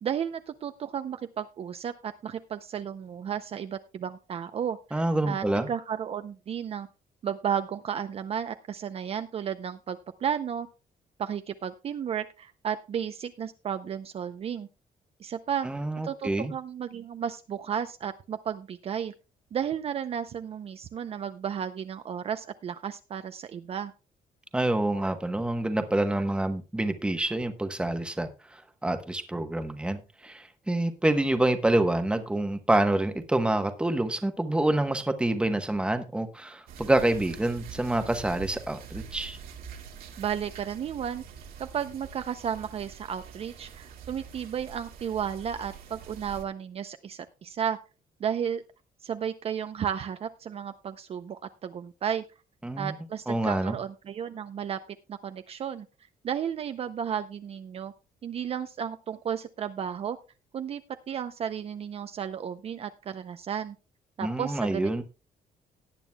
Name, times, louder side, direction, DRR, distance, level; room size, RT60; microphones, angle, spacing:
voice 1, 0.0-6.9 7.2-10.7 11.2-14.7 15.2-15.7 16.0-19.1 19.5-23.9 40.2-41.2 41.6-47.8 48.2-48.6 49.0-52.2 52.8-54.8 55.1-55.9 56.2-57.9 58.2-60.2 60.5-60.8 61.1-63.8 64.2-65.0, right 8 dB, 45° right, 10 dB, 0.5 m, -33 dB
voice 2, 4.9-5.7 15.6-16.5 24.5-39.4 52.6-53.0 53.3-53.8 64.2-65.0, right 1 dB, 5° right, 8 dB, 1.0 m, -27 dB
sound 1, 36.7-46.4, right 7 dB, 80° right, 2.1 m, -45 dB
18.0 x 9.1 x 2.3 m, 0.31 s
cardioid pair, 150°, 15 cm